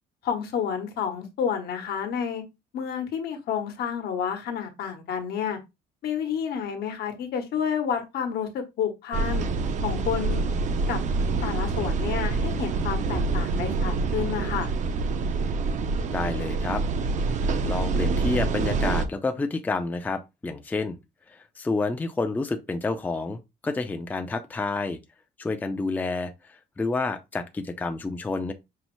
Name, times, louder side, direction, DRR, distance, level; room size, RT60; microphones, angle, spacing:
voice 1, 0.2-2.4 2.7-5.6 6.0-9.5 9.8-10.4 10.9-11.0 11.4-14.7, left 7 dB, 70° left, 1.0 m, -30 dB
sound 1, 9.1-19.1, right 3 dB, 45° right, 0.5 m, -26 dB
voice 2, 16.1-16.8 17.6-21.0 21.3-25.0 25.4-28.5, left 3 dB, 10° left, 0.4 m, -29 dB
5.4 x 2.0 x 3.0 m
cardioid pair, 110°, 17 cm